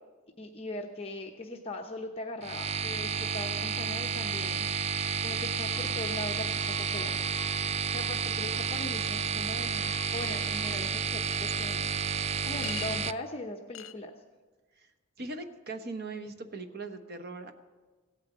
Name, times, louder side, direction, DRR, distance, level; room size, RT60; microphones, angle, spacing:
voice 1, 0.4-5.0 5.2-7.2 7.9-11.9 12.5-14.1, left 1 dB, 30° left, 1 dB, 0.9 m, -40 dB
sound 1, 2.4-13.1, right 6 dB, 30° right, 0.3 m, -31 dB
sound 2, 5.7-10.8, equal, 5° left, 3.3 m, -48 dB
Chink clink, 11.2-11.4 12.6-12.9 13.7-14.0, left 11 dB, 75° left, 0.7 m, -42 dB
voice 2, 15.2-17.5, right 3 dB, 50° right, 7 dB, 1.1 m, -40 dB
16.5 x 8.9 x 7.4 m, 1.3 s
head